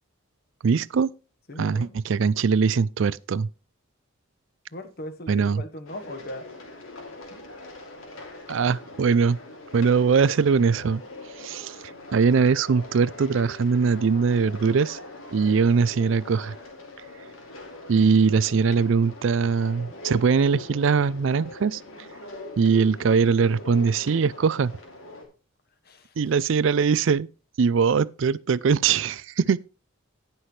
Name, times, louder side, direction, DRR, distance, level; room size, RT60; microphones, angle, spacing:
voice 1, 0.6-1.1 1.6-3.5 5.3-5.6 8.5-9.4 9.7-11.0 11.4-11.8 12.1-15.0 15.3-16.5 17.9-21.8 22.6-24.7 26.2-27.3 27.6-29.6, right 5 dB, 65° right, 0.4 m, -21 dB
voice 2, 1.5-2.0 4.7-6.5 7.3-7.4 25.8-26.1, left 1 dB, 50° left, 1.3 m, -39 dB
sound 1, 5.9-25.3, left 2 dB, 80° left, 3.0 m, -42 dB
17.5 x 6.0 x 3.2 m
head